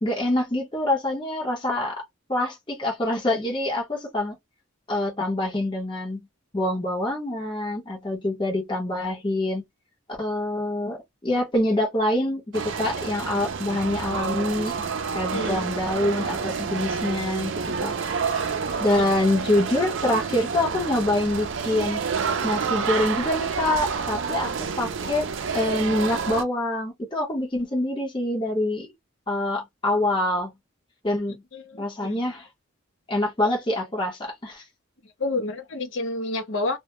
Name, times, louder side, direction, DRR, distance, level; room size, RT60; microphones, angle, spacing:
voice 1, 0.0-2.0 2.3-4.3 4.9-6.2 6.5-9.6 10.2-14.8 15.1-18.1 18.8-22.0 22.4-24.5 24.8-25.3 25.5-28.9 29.3-30.5 31.0-31.4 31.8-32.5 33.1-34.6, left 1 dB, 25° left, 0.8 m, -25 dB
sound 1, 12.5-26.4, right 5 dB, 60° right, 0.4 m, -29 dB
voice 2, 15.3-15.7 31.5-32.2 35.2-36.8, left 2 dB, 65° left, 0.7 m, -29 dB
2.2 x 2.1 x 2.8 m
head